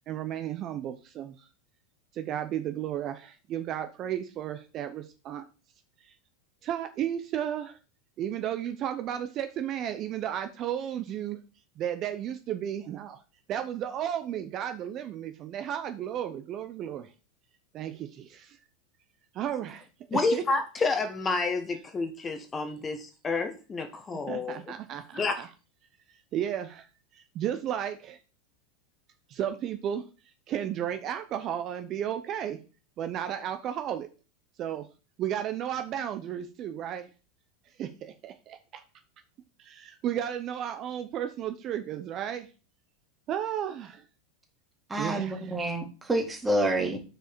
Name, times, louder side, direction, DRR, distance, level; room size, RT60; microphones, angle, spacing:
voice 1, 0.1-1.5 2.1-5.4 6.0-6.1 6.6-7.8 8.2-11.4 11.8-13.2 13.5-17.1 17.7-18.6 19.3-20.4 24.3-25.5 26.3-26.9 27.1-28.2 29.3-30.0 30.5-32.6 33.0-34.1 34.6-34.9 35.2-37.1 37.8-38.8 39.6-42.5 43.3-44.0 45.0-45.5, right 10 dB, 45° right, 8 dB, 0.7 m, -33 dB
voice 2, 20.1-24.7 25.1-25.4, left 3 dB, 20° left, 6 dB, 1.1 m, -29 dB
voice 3, 44.9-47.0, right 1 dB, 15° right, 3 dB, 2.2 m, -28 dB
6.5 x 4.8 x 4.6 m, 0.35 s
hypercardioid pair, 105°, 0 cm